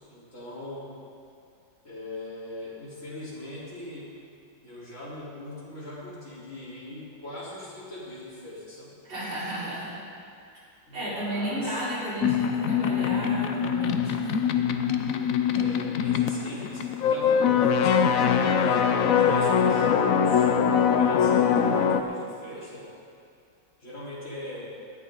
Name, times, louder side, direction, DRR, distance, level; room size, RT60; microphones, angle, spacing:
voice 1, 0.1-0.9 1.8-4.1 4.6-8.9 10.9-11.8 15.5-20.5 20.9-22.9 23.8-24.7, left 1 dB, 40° left, -8 dB, 4.2 m, -40 dB
voice 2, 9.1-10.0 10.9-14.5, right 1 dB, 70° right, -8 dB, 5.0 m, -33 dB
sound 1, 12.2-22.0, left 7 dB, 65° left, 0.8 m, -23 dB
18.5 x 12.5 x 3.9 m, 2.4 s
omnidirectional pair, 2.1 m